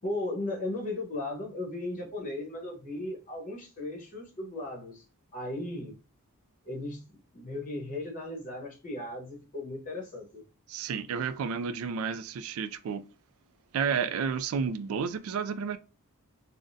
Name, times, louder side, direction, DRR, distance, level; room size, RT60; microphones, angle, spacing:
voice 1, 0.0-5.0 5.3-6.0 6.6-10.4, left 2 dB, 35° left, 1.1 m, -36 dB
voice 2, 10.7-13.0 13.7-15.8, right 6 dB, 70° right, 0.3 m, -31 dB
3.7 x 2.1 x 2.6 m
head